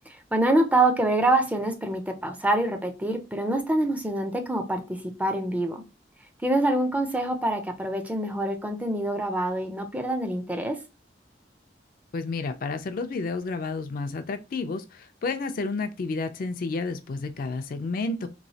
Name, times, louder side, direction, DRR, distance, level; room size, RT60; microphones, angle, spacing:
voice 1, 0.3-5.8 6.4-10.8, right 1 dB, 10° right, 0.4 m, -25 dB
voice 2, 12.1-18.3, left 3 dB, 55° left, 0.4 m, -31 dB
3.0 x 2.7 x 2.7 m
head